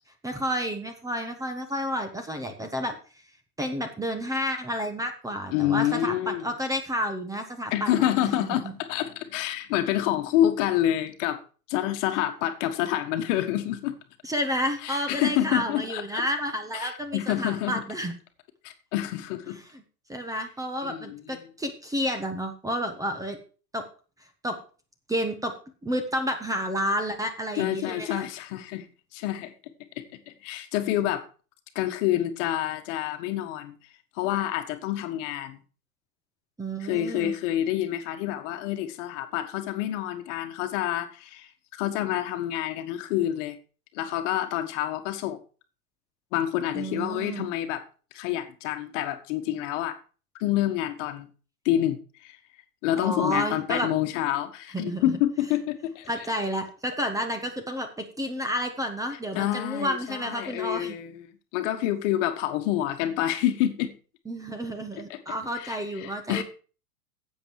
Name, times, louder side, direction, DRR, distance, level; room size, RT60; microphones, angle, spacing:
voice 1, 0.2-3.0 3.6-8.7 14.2-18.1 19.7-19.8 20.1-23.4 23.7-23.8 24.4-24.6 25.1-25.5 25.8-28.2 36.6-37.3 46.7-47.5 53.0-53.9 54.7-55.1 56.1-60.9 64.3-66.4, equal, 5° right, 7 dB, 1.2 m, -30 dB
voice 2, 5.5-6.4 7.7-11.4 11.7-14.0 14.8-16.2 16.7-17.8 18.6-19.6 20.8-21.4 27.6-28.9 29.1-29.5 30.3-31.3 31.7-33.7 34.2-35.6 36.8-43.6 43.9-45.4 46.3-47.8 48.1-50.0 50.4-51.3 51.6-52.4 52.8-56.1 59.3-61.3 61.5-63.9 65.1-65.2 65.5-66.4, left 12 dB, 50° left, 8 dB, 1.5 m, -28 dB
10.5 x 7.9 x 4.7 m, 0.37 s
hypercardioid pair, 120°, 46 cm